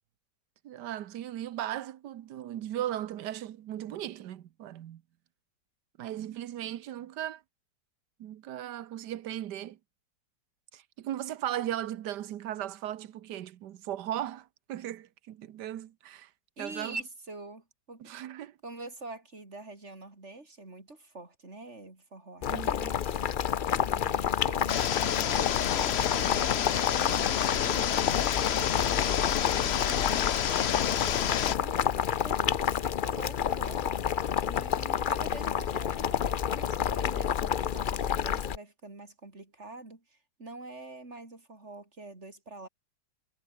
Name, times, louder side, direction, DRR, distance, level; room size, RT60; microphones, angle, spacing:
voice 1, 0.6-5.0 6.0-7.4 8.2-9.8 10.7-16.3 16.6-16.9 18.0-18.6 22.5-22.9, right 12 dB, 80° right, 1.5 m, -37 dB
voice 2, 16.6-18.1 18.6-22.8 23.1-23.2 23.7-27.3 27.6-28.4 28.9-30.8 31.3-42.7, right 2 dB, 40° right, 4.8 m, -46 dB
Boiling, 22.4-38.6, left 8 dB, 80° left, 0.4 m, -29 dB
sound 1, 24.7-31.5, left 9 dB, 50° left, 0.8 m, -29 dB
omnidirectional pair, 1.8 m